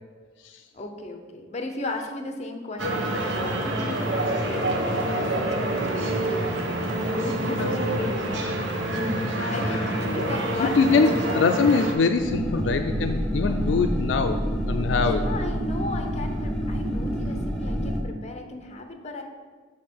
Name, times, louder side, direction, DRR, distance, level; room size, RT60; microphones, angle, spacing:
voice 1, 0.7-8.9 9.3-11.5 14.9-19.2, left 2 dB, 40° left, 4 dB, 0.8 m, -36 dB
sound 1, 2.8-11.9, right 1 dB, 90° right, 1.1 m, -27 dB
voice 2, 9.4-9.8 10.6-14.4 14.7-15.2, left 4 dB, 75° left, 6 dB, 0.4 m, -23 dB
sound 2, 12.2-18.0, equal, 5° left, 0.8 m, -27 dB
6.5 x 3.7 x 6.1 m, 1.5 s
head